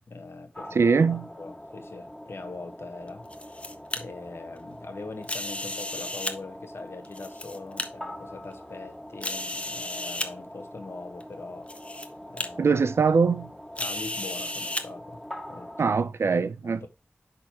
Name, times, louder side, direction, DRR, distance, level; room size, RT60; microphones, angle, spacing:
voice 1, 0.0-11.7 12.3-12.9 13.8-15.2 15.5-16.0 16.6-16.9, left 3 dB, 75° left, 1.2 m, -42 dB
sound 1, 0.5-16.1, equal, 5° left, 2.0 m, -43 dB
voice 2, 0.8-1.3 12.6-13.5 15.8-16.9, right 5 dB, 85° right, 0.5 m, -22 dB
sound 2, 3.1-4.0 5.2-6.3 7.0-7.9 8.5-8.6 9.2-10.3 11.2-11.3 11.7-12.1 12.4-12.5 13.8-14.8, left 2 dB, 30° left, 1.0 m, -33 dB
10.5 x 3.9 x 2.9 m
wide cardioid pair, 55°, 4 cm